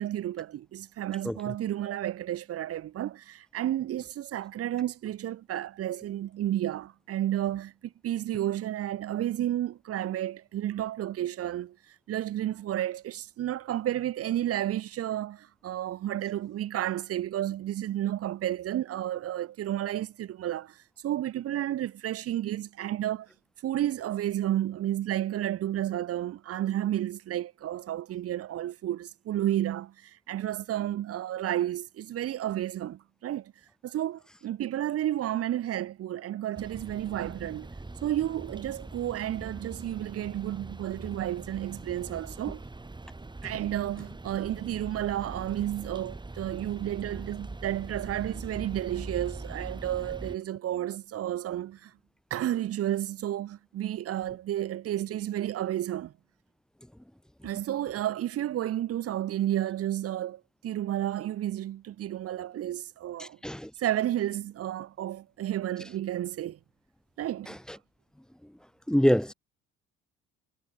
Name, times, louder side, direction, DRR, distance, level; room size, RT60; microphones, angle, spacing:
voice 1, 0.0-11.8 12.1-23.3 23.6-33.5 33.8-37.7 38.0-42.6 43.4-51.9 52.3-56.1 57.4-63.4 63.8-66.6 67.2-67.6, right 12 dB, 50° right, 1.0 m, -31 dB
voice 2, 1.2-1.5 63.2-63.7 67.5-67.6 68.9-69.3, equal, ahead, 0.6 m, -26 dB
sound 1, 36.5-50.4, right 2 dB, 15° right, 6.3 m, -42 dB
supercardioid pair, 85°, 29 cm